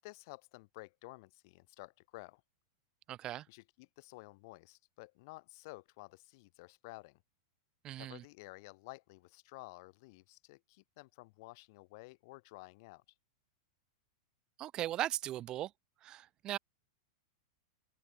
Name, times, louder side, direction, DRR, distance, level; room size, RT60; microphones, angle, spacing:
voice 1, 0.0-2.4 3.5-7.2 7.9-13.0, left 24 dB, 55° left, 7.8 m, -53 dB
voice 2, 3.1-3.4 7.8-8.2 14.6-15.7 16.0-16.6, right 13 dB, 35° right, 1.2 m, -38 dB
hypercardioid pair, 110°, 2 cm